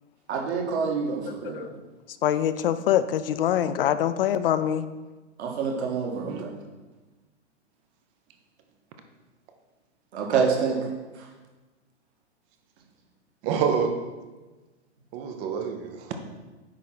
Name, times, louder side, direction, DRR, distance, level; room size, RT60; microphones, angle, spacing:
voice 1, 0.3-1.7 5.4-6.5 10.1-10.8, right 5 dB, 65° right, 0 dB, 1.8 m, -27 dB
voice 2, 2.2-4.9, left 10 dB, 50° left, 13 dB, 0.5 m, -24 dB
voice 3, 13.4-13.9 15.1-16.2, right 6 dB, 15° right, 6 dB, 0.4 m, -27 dB
9.8 x 3.7 x 5.9 m, 1.2 s
hypercardioid pair, 145°, 36 cm